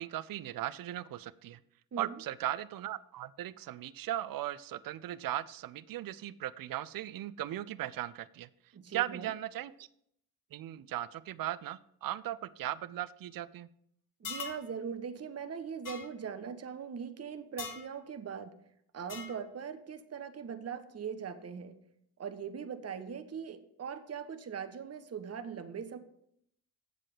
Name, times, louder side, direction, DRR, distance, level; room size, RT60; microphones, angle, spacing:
voice 1, 0.0-1.6 2.0-8.5 8.9-9.9 10.5-13.7, right 13 dB, 50° right, 18 dB, 0.6 m, -38 dB
voice 2, 8.7-9.3 14.2-18.5 18.9-21.8 22.2-26.0, right 7 dB, 35° right, 8 dB, 1.0 m, -41 dB
sound 1, 14.2-14.6 15.9-16.1 17.6-17.9 19.1-19.4, left 5 dB, 45° left, 1.3 m, -41 dB
7.7 x 7.5 x 5.0 m, 0.71 s
hypercardioid pair, 45°, 45 cm